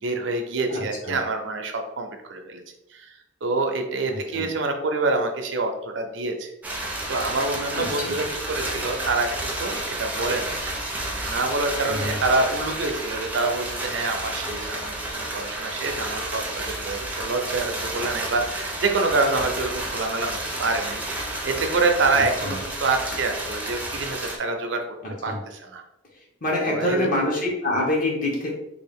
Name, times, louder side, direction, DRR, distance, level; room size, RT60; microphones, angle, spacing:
voice 1, 0.0-2.6 2.9-6.5 6.8-9.3 9.6-10.5 11.2-14.9 15.3-24.8 25.2-25.8 26.6-27.1, right 3 dB, 75° right, 4 dB, 0.6 m, -26 dB
voice 2, 0.7-1.2 4.1-4.4 7.7-8.1 11.9-12.2 22.1-22.5 25.0-25.4 26.4-28.5, left 1 dB, 45° left, -3 dB, 1.0 m, -26 dB
sound 1, 6.6-24.4, right 1 dB, 10° right, 0.5 m, -31 dB
3.4 x 2.4 x 3.5 m, 0.88 s
head